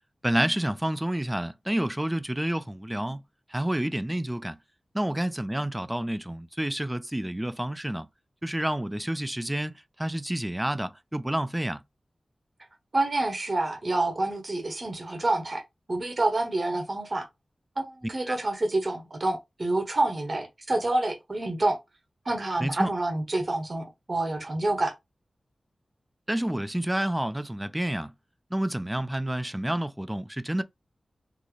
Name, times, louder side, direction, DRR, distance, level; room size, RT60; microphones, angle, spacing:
voice 1, 0.2-3.2 3.5-4.6 4.9-8.1 8.4-11.8 18.3-18.4 22.6-22.9 26.3-28.1 28.5-30.6, right 1 dB, 10° right, 0.4 m, -29 dB
voice 2, 12.9-15.6 15.9-17.3 17.8-21.8 22.3-24.9, right 2 dB, 45° right, 0.8 m, -27 dB
3.9 x 2.0 x 3.1 m
wide cardioid pair, 75°, 0 cm